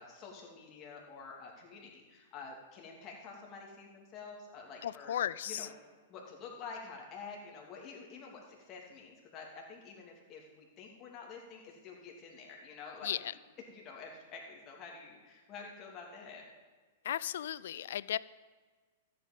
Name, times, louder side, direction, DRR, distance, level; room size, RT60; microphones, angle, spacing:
voice 1, 0.0-5.1 5.5-5.7 6.1-13.4 13.7-16.4, left 5 dB, 35° left, -1 dB, 2.9 m, -48 dB
voice 2, 4.8-5.7 13.0-13.2 17.1-18.2, left 11 dB, 65° left, 20 dB, 0.3 m, -35 dB
13.5 x 8.3 x 5.4 m, 1.4 s
figure-of-eight pair, 105°, 0 cm